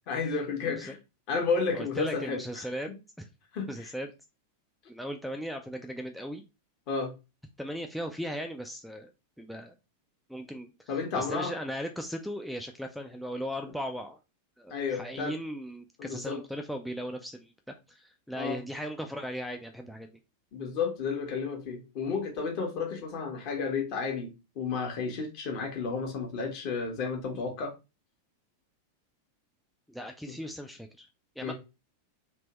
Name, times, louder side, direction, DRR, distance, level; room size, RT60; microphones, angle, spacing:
voice 1, 0.1-1.0 1.3-2.7 3.5-3.9 6.9-7.1 10.9-11.5 14.7-15.3 16.0-16.4 18.4-18.6 20.5-27.7 31.4-31.5, left 5 dB, 45° left, 2 dB, 1.2 m, -32 dB
voice 2, 1.7-2.9 3.2-3.3 3.7-4.1 4.9-6.4 7.6-9.1 9.4-9.7 10.3-14.2 14.6-17.5 17.9-20.2 29.9-31.1 31.4-31.5, equal, ahead, 3 dB, 0.3 m, -37 dB
3.4 x 2.9 x 2.9 m, 0.28 s
figure-of-eight pair, 90°, 0 cm